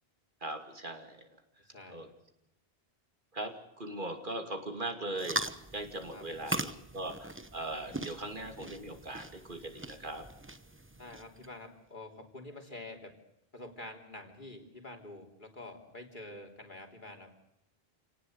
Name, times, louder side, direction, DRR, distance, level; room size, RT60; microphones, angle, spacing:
voice 1, 0.4-1.3 1.9-2.1 3.3-10.3, right 2 dB, 55° right, 5 dB, 2.8 m, -40 dB
voice 2, 1.7-2.1 6.1-6.2 11.0-13.2 13.5-17.3, left 2 dB, 50° left, 3 dB, 3.6 m, -47 dB
sound 1, 5.2-11.5, right 2 dB, 15° right, 0.9 m, -40 dB
29.0 x 18.5 x 8.0 m, 0.85 s
omnidirectional pair, 1.0 m